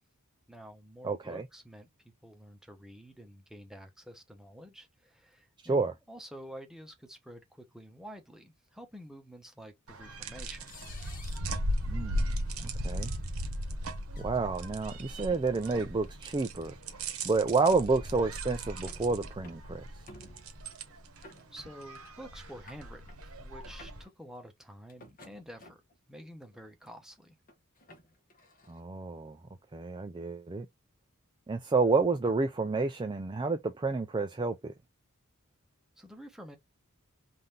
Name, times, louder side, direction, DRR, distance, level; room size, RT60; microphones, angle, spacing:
voice 1, 0.5-1.9 2.2-10.7 21.5-25.8 26.1-27.4 36.0-36.6, equal, ahead, 0.9 m, -49 dB
voice 2, 1.0-1.5 5.6-5.9 11.8-12.3 12.6-13.2 14.2-19.8 28.7-29.4 29.7-30.7 31.5-34.7, right 3 dB, 20° right, 0.4 m, -30 dB
sound 1, 9.4-9.5 10.7-11.5 12.4-12.5 12.9-13.0 14.1-14.3 15.0-15.5 16.6-16.8 17.5-17.9 18.5-19.1 19.4-19.7 20.1-20.6 21.2-21.8 22.0-22.2 22.4-23.2 23.6-24.1 24.9-26.0 26.5-26.9 27.5-28.8, left 2 dB, 40° left, 1.2 m, -53 dB
sound 2, 9.9-24.0, equal, 70° right, 1.0 m, -37 dB
3.9 x 2.6 x 3.3 m
head